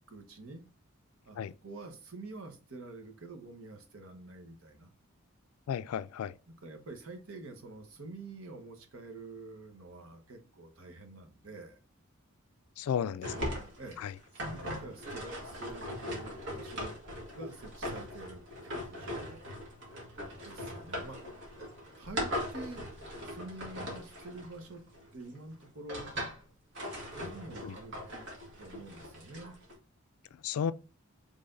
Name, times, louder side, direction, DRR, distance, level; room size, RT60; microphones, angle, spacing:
voice 1, 0.1-0.6 1.2-4.9 6.5-11.8 13.3-14.0 14.3-17.0 17.3-19.5 20.4-21.2 22.0-22.8 23.2-24.8 25.1-26.1 27.1-27.9 28.6-29.6, right 2 dB, 75° right, 1.1 m, -47 dB
voice 2, 5.7-6.3 12.8-13.3 27.6-27.7 30.4-30.7, left 8 dB, 90° left, 0.3 m, -32 dB
sound 1, 13.2-25.1 25.6-26.4 26.7-29.7, equal, 55° right, 1.8 m, -40 dB
5.6 x 3.4 x 2.6 m
head